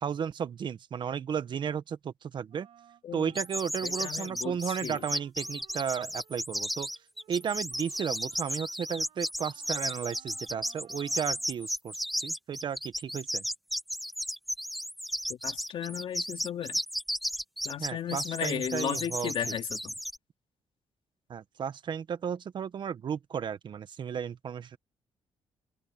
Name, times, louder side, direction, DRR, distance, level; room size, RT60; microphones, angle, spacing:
voice 1, 0.0-2.7 3.1-6.9 7.3-13.4 17.8-19.5 21.3-24.8, right 7 dB, 50° right, 1.2 m, -34 dB
Wind instrument woodwind instrument, 2.5-11.5, right 10 dB, 65° right, 6.6 m, -61 dB
sound 1, 3.3-20.2, equal, ahead, 1.3 m, -34 dB
voice 2, 3.8-5.0 15.3-16.8 17.6-19.9, left 9 dB, 60° left, 2.8 m, -35 dB
cardioid pair, 125°, 10 cm